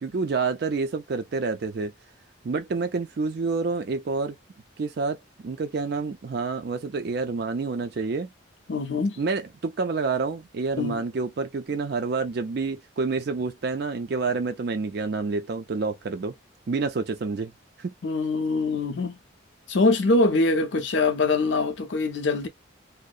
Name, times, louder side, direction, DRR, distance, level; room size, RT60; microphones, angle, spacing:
voice 1, 0.0-1.9 2.4-4.4 4.8-5.2 5.4-8.3 9.2-16.3 16.7-17.5 17.8-17.9, right 4 dB, 55° right, 0.4 m, -28 dB
voice 2, 8.7-9.2 10.8-11.0 18.0-19.2 19.7-22.5, left 3 dB, 70° left, 0.6 m, -23 dB
2.6 x 2.0 x 2.3 m
head